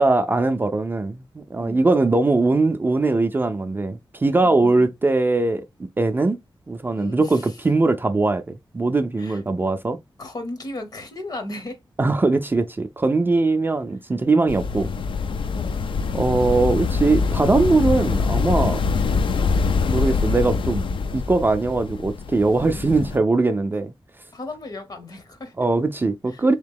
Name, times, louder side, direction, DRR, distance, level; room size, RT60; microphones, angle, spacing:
voice 1, 0.0-5.6 6.0-6.4 6.7-10.0 12.0-14.9 16.1-18.8 19.8-20.8 21.1-23.9 25.6-26.5, right 3 dB, 25° right, 0.3 m, -21 dB
voice 2, 4.4-4.9 6.9-7.6 9.2-9.4 10.2-11.8 15.5-15.8 22.5-23.2 24.3-25.5 26.3-26.4, left 2 dB, 50° left, 0.9 m, -36 dB
sound 1, 14.5-23.2, left 4 dB, 75° left, 0.4 m, -24 dB
3.5 x 2.9 x 3.6 m
wide cardioid pair, 175°, 9 cm